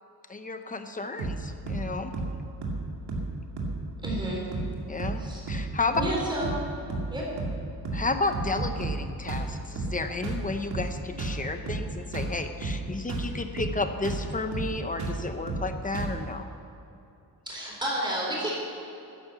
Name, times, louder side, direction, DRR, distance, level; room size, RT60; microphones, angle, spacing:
voice 1, 0.3-2.1 4.9-5.2 5.5-6.0 7.9-16.5, left 3 dB, 20° left, 7 dB, 0.8 m, -32 dB
sound 1, 1.2-1.4 1.7-1.9 2.1-2.4 2.6-2.8 3.1-3.3 3.6-3.8 4.0-4.3 4.5-4.7 5.0-5.2 5.5-5.7 5.9-6.2 6.4-6.6 6.9-7.1 7.4-7.6 7.8-8.1 8.3-9.0 9.3-9.5 9.8-10.0 10.2-10.4 10.7-10.9 11.2-11.4 11.7-11.9 12.1-12.4 12.6-12.8 13.1-13.3 13.6-13.8 14.0-14.3 14.5-14.7 15.0-15.2 15.5-15.7 15.9-16.2, right 3 dB, 85° right, 2.5 m, -31 dB
voice 2, 4.0-4.5 5.2-5.4 6.0-6.5 7.1-7.3 17.5-18.5, right 1 dB, 10° right, -4 dB, 4.1 m, -31 dB
14.0 x 10.5 x 7.1 m, 2.7 s
wide cardioid pair, 170°, 39 cm